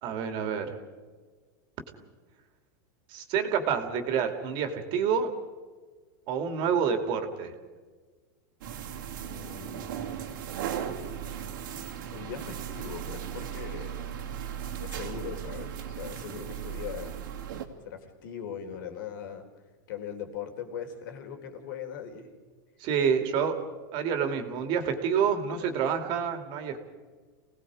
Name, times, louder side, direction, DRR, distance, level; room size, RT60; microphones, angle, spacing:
voice 1, 0.0-0.8 3.1-5.3 6.3-7.5 22.8-23.6 23.9-26.8, right 7 dB, 45° right, 6 dB, 2.7 m, -28 dB
sound 1, 8.6-17.7, right 9 dB, 75° right, 2.8 m, -37 dB
voice 2, 9.2-10.2 12.1-14.0 14.8-17.2 17.9-19.5 19.9-22.3, left 7 dB, 70° left, 6 dB, 3.7 m, -40 dB
29.0 x 18.5 x 5.0 m, 1.4 s
supercardioid pair, 140°, 11 cm